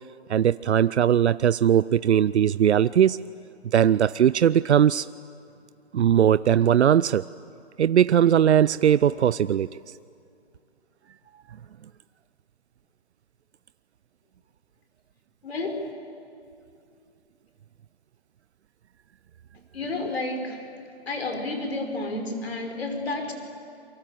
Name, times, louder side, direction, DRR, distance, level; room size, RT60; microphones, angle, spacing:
voice 1, 0.3-3.2 3.7-5.1 5.9-7.3 7.8-9.7, right 9 dB, 80° right, 17 dB, 0.6 m, -19 dB
voice 2, 15.4-15.9 19.7-20.7 21.1-23.3, left 2 dB, 65° left, 5 dB, 5.6 m, -30 dB
29.0 x 24.0 x 7.8 m, 2.6 s
hypercardioid pair, 175°, 33 cm